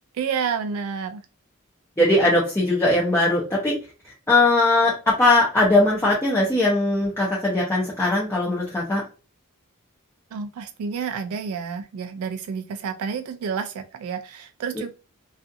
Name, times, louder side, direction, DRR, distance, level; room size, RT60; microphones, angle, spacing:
voice 1, 0.2-1.2 10.3-14.9, right 6 dB, 80° right, 8 dB, 0.3 m, -29 dB
voice 2, 2.0-3.8 4.3-9.0, left 2 dB, 10° left, -6 dB, 0.6 m, -20 dB
2.4 x 2.4 x 2.6 m, 0.32 s
head